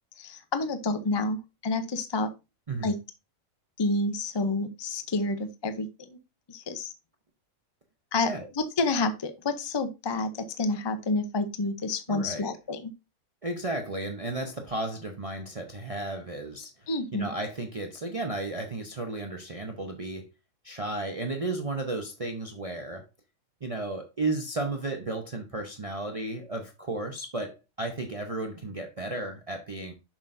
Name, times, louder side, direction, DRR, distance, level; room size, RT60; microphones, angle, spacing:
voice 1, 0.2-2.3 2.8-2.9 3.8-6.2 6.5-6.9 8.1-12.9 16.9-17.3, left 2 dB, 30° left, 0.4 m, -29 dB
voice 2, 12.1-12.5 13.4-16.9 17.1-20.3 20.6-23.1 23.6-29.9, right 2 dB, 35° right, 0.7 m, -33 dB
7.2 x 6.2 x 2.6 m
omnidirectional pair, 1.4 m